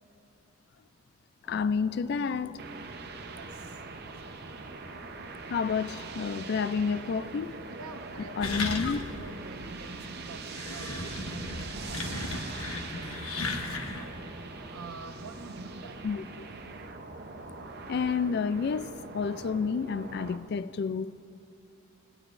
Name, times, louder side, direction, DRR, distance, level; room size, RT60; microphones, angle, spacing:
sound 1, 1.4-18.1, equal, 5° left, 2.6 m, -51 dB
voice 1, 1.5-2.6 5.5-7.6 8.4-9.0 16.0-16.2 17.9-21.2, left 5 dB, 50° left, 0.3 m, -30 dB
sound 2, 2.6-20.4, right 4 dB, 50° right, 0.7 m, -43 dB
voice 2, 3.3-3.8 4.2-4.5 7.8-13.3 13.6-14.3 14.7-16.0, right 4 dB, 90° right, 0.8 m, -47 dB
sound 3, 8.4-9.2 9.6-9.7 10.3-14.1, left 3 dB, 85° left, 1.2 m, -35 dB
18.5 x 16.5 x 2.6 m
head